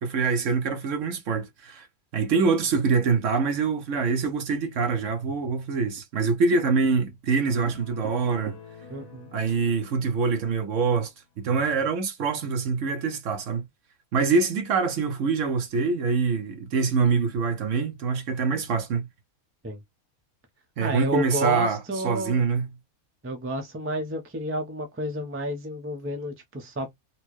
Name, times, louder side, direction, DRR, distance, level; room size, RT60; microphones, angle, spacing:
voice 1, 0.0-1.9 2.1-8.6 9.3-13.6 14.1-19.1 20.8-22.7, right 4 dB, 65° right, 1.0 m, -25 dB
sound 1, 7.5-11.0, left 6 dB, 45° left, 0.5 m, -47 dB
voice 2, 8.9-9.3 19.6-19.8 20.8-22.4 23.2-27.0, equal, 15° right, 0.4 m, -31 dB
4.2 x 2.1 x 3.0 m
omnidirectional pair, 1.5 m